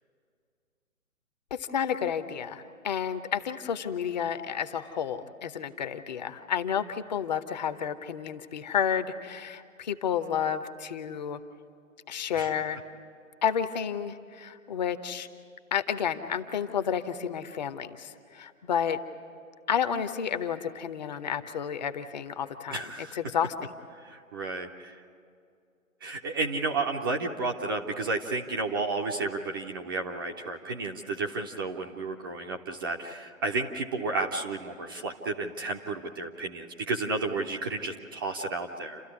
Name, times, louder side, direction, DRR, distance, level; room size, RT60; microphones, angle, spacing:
voice 1, 1.5-11.4 12.1-12.8 13.4-15.3 15.7-19.0 19.7-22.8 23.1-23.7, left 8 dB, 35° left, 10 dB, 0.8 m, -31 dB
voice 2, 22.7-23.2 24.0-24.9 26.0-39.0, right 3 dB, 15° right, 1 dB, 0.6 m, -32 dB
29.0 x 13.5 x 9.7 m, 2.3 s
figure-of-eight pair, 135°, 40 cm